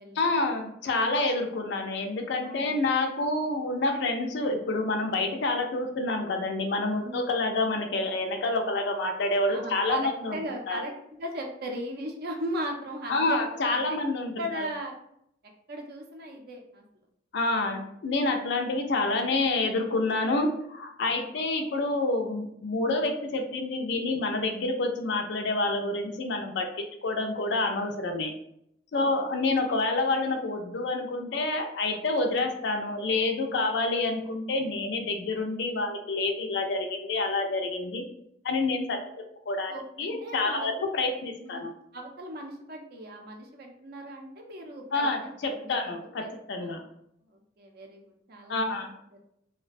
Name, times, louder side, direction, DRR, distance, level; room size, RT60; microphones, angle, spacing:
voice 1, 0.2-10.4 10.7-10.8 13.1-14.7 17.3-26.7 27.0-28.3 28.9-38.0 38.4-39.0 39.5-41.7 44.9-46.8 48.5-48.9, left 2 dB, 65° left, 4 dB, 0.4 m, -28 dB
voice 2, 9.5-13.4 13.7-13.8 14.4-14.9 15.7-16.8 21.2-21.4 28.9-29.2 33.5-33.6 39.7-41.0 41.4-41.6 41.9-46.8 47.3-48.9, right 1 dB, 55° right, 2 dB, 0.5 m, -38 dB
2.3 x 2.2 x 2.5 m, 0.75 s
head